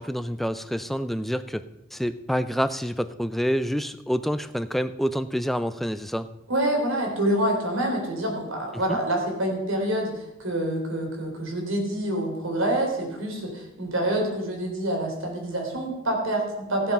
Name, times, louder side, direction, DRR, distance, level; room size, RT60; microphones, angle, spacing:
voice 1, 0.0-1.6 1.9-6.3 8.9-9.0, equal, ahead, 12 dB, 0.4 m, -27 dB
voice 2, 6.5-10.1 10.4-16.9, right 1 dB, 80° right, 1 dB, 3.6 m, -26 dB
15.5 x 7.4 x 5.7 m, 0.96 s
head